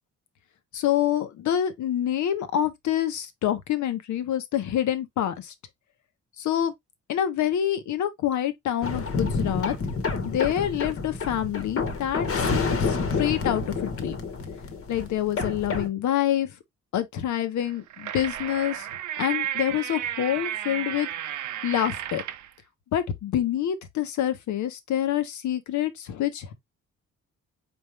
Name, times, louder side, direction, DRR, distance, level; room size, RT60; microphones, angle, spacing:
voice 1, 0.7-5.5 6.4-6.7 7.1-9.7 10.2-14.2 14.9-16.5 16.9-18.9 19.1-21.1 21.6-22.2 22.9-26.5, left 11 dB, 75° left, 1.0 m, -27 dB
sound 1, 8.8-15.9, left 4 dB, 50° left, 1.2 m, -29 dB
sound 2, 17.6-22.5, right 11 dB, 75° right, 0.7 m, -33 dB
4.3 x 3.6 x 3.2 m
cardioid pair, 90°, 30 cm